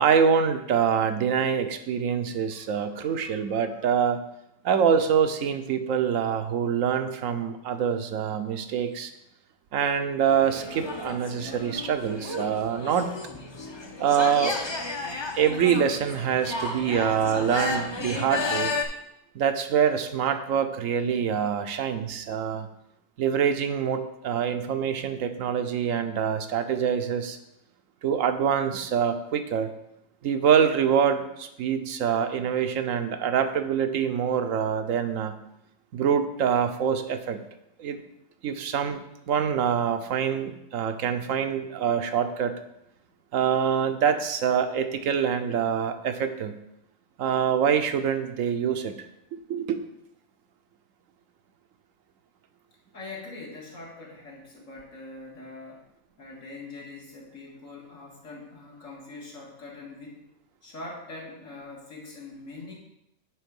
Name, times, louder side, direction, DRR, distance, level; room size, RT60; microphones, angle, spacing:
voice 1, 0.0-4.2 4.6-9.1 9.7-13.1 14.0-14.6 15.3-18.7 19.3-22.7 23.2-27.4 28.0-29.7 30.2-35.3 35.9-37.4 37.8-38.0 38.4-42.5 43.3-46.6 47.2-49.1 49.5-49.8, right 7 dB, 80° right, 8 dB, 1.1 m, -25 dB
voice 2, 2.5-3.9 16.1-17.0 52.9-55.8 56.2-60.2 60.6-62.7, left 2 dB, 75° left, -3 dB, 2.2 m, -43 dB
sound 1, 10.3-18.9, left 3 dB, 30° left, 0.6 m, -33 dB
9.3 x 3.5 x 5.3 m, 0.81 s
omnidirectional pair, 1.4 m